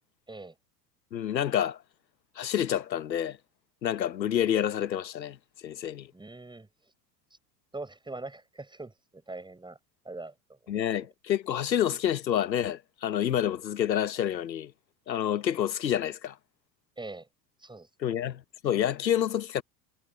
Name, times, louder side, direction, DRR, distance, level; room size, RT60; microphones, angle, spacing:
voice 1, 1.1-1.8 2.4-3.4 3.8-5.4 5.6-6.1 10.7-14.7 15.1-16.4 18.0-19.6, left 10 dB, 85° left, 1.3 m, -28 dB
voice 2, 6.1-6.7 7.7-9.8 10.0-10.6 17.0-17.3 17.6-17.9, right 2 dB, 10° right, 7.2 m, -42 dB
hypercardioid pair, 85°, 50 cm